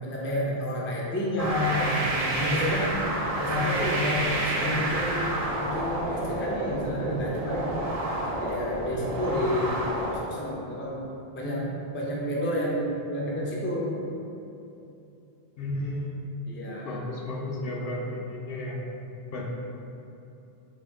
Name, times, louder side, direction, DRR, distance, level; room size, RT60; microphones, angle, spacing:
voice 1, 0.0-3.0 3.4-5.2 5.6-7.8 8.4-11.0 11.4-11.7 11.9-13.9 16.5-17.0, left 1 dB, 15° left, -4 dB, 0.4 m, -30 dB
sound 1, 1.4-10.2, right 1 dB, 45° right, 0.5 m, -29 dB
voice 2, 15.6-16.4 16.8-18.8 19.3-19.5, left 1 dB, 65° left, -1 dB, 0.7 m, -33 dB
4.2 x 2.8 x 3.4 m, 2.8 s
omnidirectional pair, 1.1 m